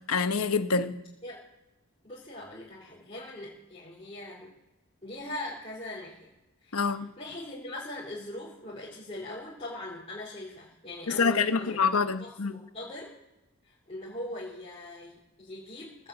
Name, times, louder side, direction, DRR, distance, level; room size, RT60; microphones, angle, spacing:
voice 1, 0.1-0.9 6.7-7.1 11.1-12.5, left 5 dB, 80° left, 9 dB, 1.0 m, -26 dB
voice 2, 2.0-4.5 5.0-6.3 6.6-11.8 12.2-13.1 13.7-16.1, left 1 dB, 25° left, -7 dB, 4.1 m, -41 dB
18.5 x 9.0 x 8.1 m, 0.96 s
head